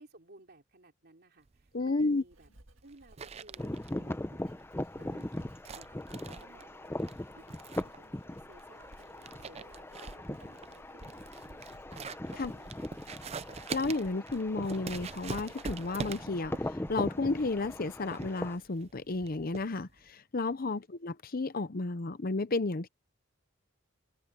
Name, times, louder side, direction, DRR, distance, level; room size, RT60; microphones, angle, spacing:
voice 1, 0.0-2.5 2.8-4.4 4.9-7.5 7.8-11.8 12.3-13.2 20.7-20.9, right 2 dB, 55° right, 3.4 m, -58 dB
sound 1, 1.5-20.1, right 4 dB, 30° right, 0.5 m, -45 dB
voice 2, 1.7-2.2 12.4-12.5 13.7-22.9, left 3 dB, 45° left, 0.7 m, -32 dB
Writing, 1.7-18.6 18.9-19.4, right 1 dB, 85° right, 1.9 m, -59 dB
sound 2, 3.6-18.6, left 1 dB, 10° left, 0.7 m, -40 dB
head